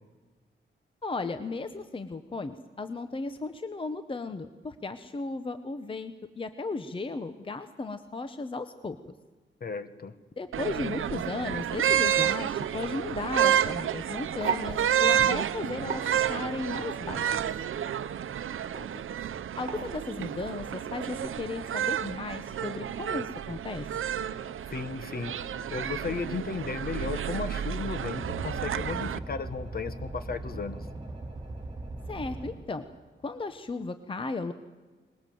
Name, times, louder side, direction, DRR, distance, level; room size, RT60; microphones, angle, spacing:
voice 1, 1.0-9.0 10.4-16.0 16.3-17.4 19.6-23.9 32.1-32.8 33.2-34.5, left 3 dB, 25° left, 10 dB, 0.8 m, -35 dB
voice 2, 9.6-10.1 18.8-19.0 24.7-25.4 25.7-30.8, left 5 dB, 45° left, 11 dB, 1.4 m, -35 dB
sound 1, 10.5-29.2, right 9 dB, 80° right, 0.8 m, -30 dB
sound 2, 12.0-21.3, right 6 dB, 40° right, 2.1 m, -41 dB
sound 3, 28.1-32.5, right 2 dB, 20° right, 7.3 m, -39 dB
23.0 x 21.0 x 7.7 m, 1.3 s
wide cardioid pair, 155°, 21 cm